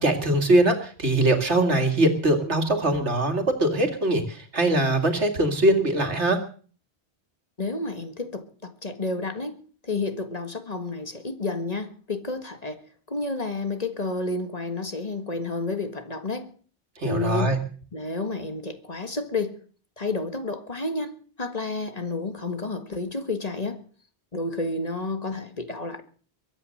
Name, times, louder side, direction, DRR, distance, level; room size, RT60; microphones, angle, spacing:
voice 1, 0.0-6.4 17.0-17.6, right 1 dB, 90° right, 2.6 m, -22 dB
voice 2, 7.6-16.5 17.0-17.6 17.9-19.6 20.0-23.8 24.3-26.0, left 3 dB, 35° left, 1.8 m, -30 dB
22.5 x 9.3 x 6.5 m
omnidirectional pair, 1.1 m